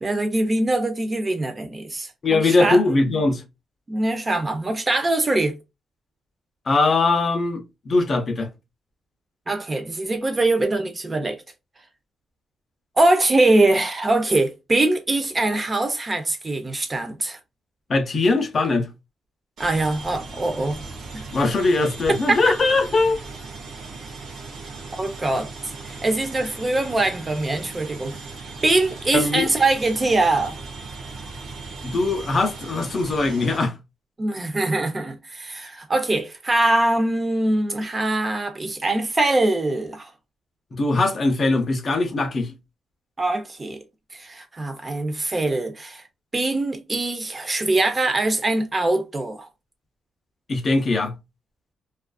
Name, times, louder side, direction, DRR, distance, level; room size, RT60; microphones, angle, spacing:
voice 1, 0.0-3.0 3.9-5.6 9.5-11.4 13.0-17.4 19.6-20.8 25.0-25.5 25.9-28.2 28.6-30.6 34.2-40.1 43.2-43.8 44.1-46.0 46.3-49.5, right 2 dB, 20° right, 0.4 m, -23 dB
voice 2, 2.2-3.4 6.7-8.5 17.9-18.9 21.3-23.2 29.1-29.5 31.9-33.7 40.7-42.5 50.5-51.1, left 3 dB, 35° left, 0.5 m, -21 dB
sound 1, 19.6-33.6, right 3 dB, 55° right, 0.7 m, -38 dB
2.4 x 2.3 x 2.2 m
wide cardioid pair, 160°, 0 cm